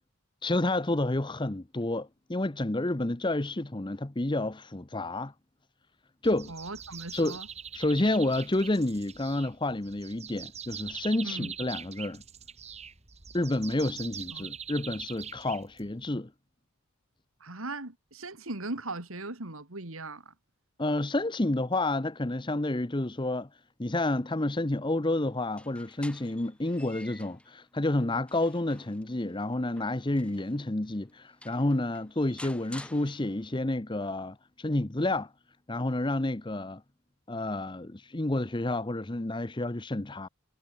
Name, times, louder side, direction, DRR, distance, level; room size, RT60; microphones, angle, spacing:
voice 1, 0.4-5.3 6.2-6.5 7.1-7.4 7.7-12.2 13.3-16.3 20.8-23.5 23.8-35.3 35.7-36.8 37.3-40.3, left 2 dB, 20° left, 0.8 m, -29 dB
sound 1, 6.2-16.1, right 8 dB, 30° right, 2.2 m, -43 dB
voice 2, 6.5-7.5 11.2-11.5 14.3-14.5 17.4-20.3, right 2 dB, 70° right, 3.0 m, -39 dB
sound 2, 25.4-27.5 28.0-30.6 31.1-31.2 31.4-33.6, left 1 dB, 5° left, 7.1 m, -50 dB
head